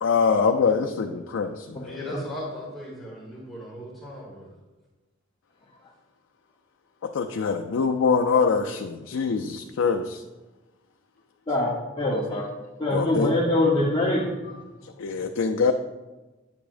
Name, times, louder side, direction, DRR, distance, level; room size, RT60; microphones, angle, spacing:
voice 1, 0.0-2.0 7.0-10.2 12.9-13.3 15.0-15.7, left 5 dB, 85° left, 4 dB, 0.4 m, -24 dB
voice 2, 1.8-4.5, left 1 dB, ahead, -6 dB, 1.5 m, -38 dB
voice 3, 12.0-12.5 12.8-14.5, left 1 dB, 25° left, -5 dB, 0.9 m, -23 dB
8.9 x 6.9 x 2.5 m, 1.2 s
head